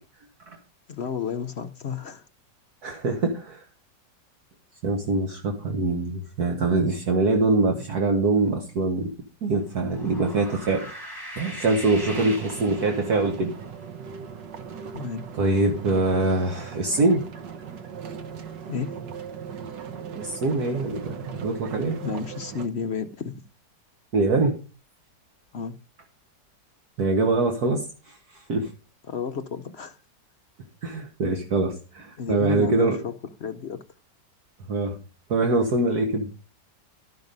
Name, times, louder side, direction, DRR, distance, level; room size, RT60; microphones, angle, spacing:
voice 1, 0.9-2.2 3.1-3.2 14.9-15.3 18.7-19.0 22.0-23.4 25.5-25.8 29.1-30.0 32.2-33.1 33.4-33.8, left 6 dB, 65° left, 0.6 m, -32 dB
voice 2, 2.8-3.6 4.8-9.1 9.4-10.9 11.4-13.5 15.3-17.2 20.0-22.0 24.1-24.6 27.0-28.7 30.8-33.0 34.7-35.0 35.3-36.3, right 3 dB, 60° right, 1.8 m, -24 dB
sound 1, 9.7-13.4, equal, 10° right, 2.8 m, -40 dB
sound 2, 12.0-22.7, right 7 dB, 80° right, 1.7 m, -38 dB
13.0 x 5.9 x 5.3 m
omnidirectional pair, 1.9 m